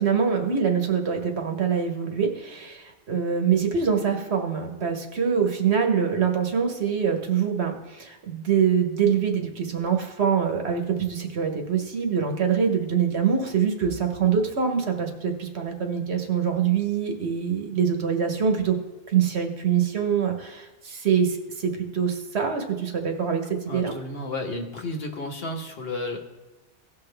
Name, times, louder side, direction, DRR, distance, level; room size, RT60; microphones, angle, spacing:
voice 1, 0.0-18.8 19.1-23.9, right 7 dB, 65° right, 4 dB, 1.4 m, -24 dB
voice 2, 23.7-26.2, left 2 dB, 55° left, 2 dB, 1.4 m, -32 dB
17.0 x 5.9 x 3.4 m, 1.2 s
omnidirectional pair, 1.2 m